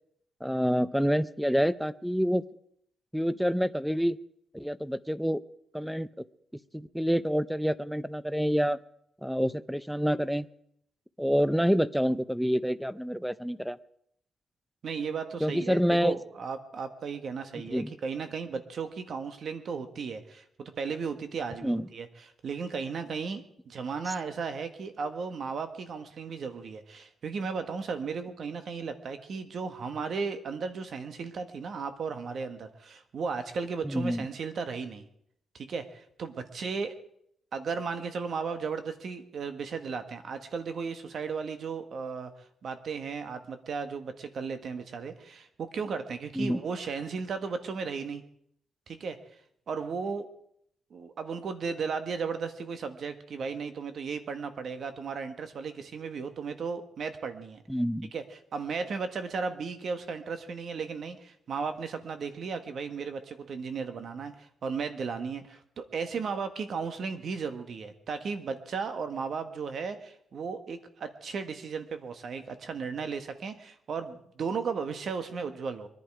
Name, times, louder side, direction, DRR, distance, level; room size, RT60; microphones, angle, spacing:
voice 1, 0.4-2.4 3.1-4.2 4.5-5.4 5.7-6.1 6.7-8.8 9.2-10.5 11.2-13.8 15.4-16.2 17.7-17.9 21.6-21.9 33.8-34.3 46.4-46.6 57.7-58.1, equal, ahead, 16 dB, 0.5 m, -27 dB
voice 2, 14.8-35.1 35.5-36.9 37.5-42.3 42.6-48.2 48.9-49.2 49.7-50.3 50.9-57.6 58.1-75.9, right 5 dB, 55° right, 8 dB, 1.5 m, -35 dB
23.0 x 11.0 x 4.8 m, 0.70 s
cardioid pair, 140°, 0 cm